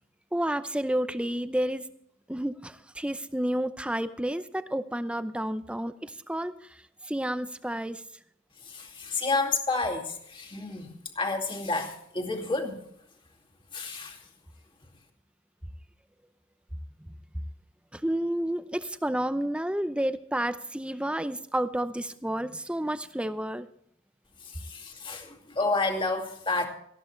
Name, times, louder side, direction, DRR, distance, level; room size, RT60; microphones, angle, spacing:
voice 1, 0.3-1.9 2.3-8.0 17.9-23.7, right 1 dB, 5° right, 11 dB, 0.6 m, -30 dB
voice 2, 8.6-12.8 13.7-14.3 24.4-26.7, left 3 dB, 25° left, 2 dB, 2.3 m, -30 dB
18.5 x 14.0 x 3.3 m, 0.69 s
head